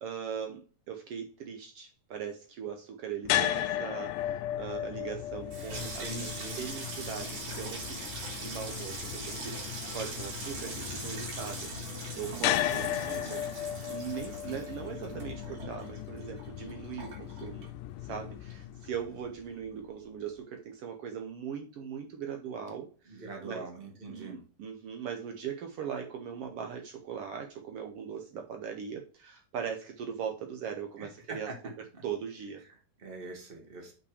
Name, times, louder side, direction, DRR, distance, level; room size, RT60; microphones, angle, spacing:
voice 1, 0.0-6.3 6.6-8.0 8.3-11.8 12.1-17.7 18.0-23.7 24.1-31.5 32.0-32.6, right 7 dB, 85° right, 4 dB, 1.3 m, -40 dB
sound 1, 3.2-19.4, left 12 dB, 80° left, 1.9 m, -36 dB
Water tap faucet / Sink (filling or washing), 5.3-18.2 18.5-19.2 19.4-19.7, right 3 dB, 55° right, 4.0 m, -41 dB
voice 2, 5.7-6.6 7.8-8.1 12.7-13.4 22.7-22.8 23.1-24.4 31.0-31.6 31.9-32.0 32.6-33.9, right 2 dB, 20° right, 2 dB, 1.5 m, -44 dB
6.6 x 5.8 x 4.8 m, 0.36 s
omnidirectional pair, 3.8 m